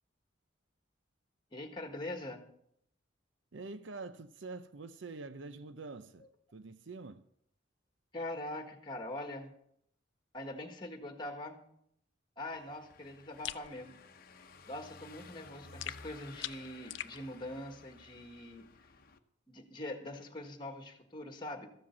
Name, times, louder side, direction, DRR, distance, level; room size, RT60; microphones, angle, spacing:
voice 1, 1.5-2.5 8.1-9.5 10.3-11.6 12.4-13.9 14.6-18.6 19.5-21.7, left 1 dB, 25° left, 1.6 m, -43 dB
voice 2, 3.5-6.3 6.5-7.2, right 3 dB, 70° right, 0.6 m, -45 dB
Car passing by / Engine, 12.5-19.2, left 4 dB, 50° left, 0.9 m, -55 dB
sound 1, 13.4-13.7 15.8-17.2, left 12 dB, 70° left, 0.5 m, -41 dB
14.0 x 7.5 x 7.2 m
head